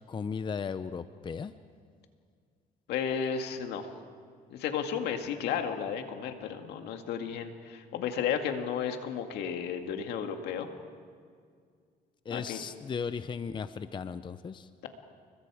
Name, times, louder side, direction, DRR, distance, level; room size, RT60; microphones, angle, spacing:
voice 1, 0.1-1.5 12.3-14.7, left 6 dB, 30° left, 12 dB, 0.6 m, -36 dB
voice 2, 2.9-3.9 4.5-10.7 12.3-12.6, left 7 dB, 80° left, 5 dB, 2.1 m, -33 dB
29.0 x 22.5 x 4.9 m, 2.1 s
cardioid pair, 110°, 17 cm